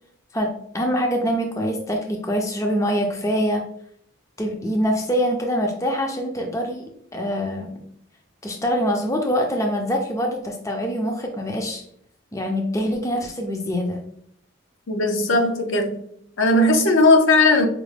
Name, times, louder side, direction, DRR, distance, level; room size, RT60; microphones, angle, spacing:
voice 1, 0.3-3.6 4.4-6.9 7.1-7.7 8.4-11.8 12.3-14.0, equal, 15° left, 0.4 m, -24 dB
voice 2, 14.9-16.0 16.4-17.7, left 2 dB, 75° left, 0.6 m, -17 dB
4.9 x 2.1 x 3.2 m
head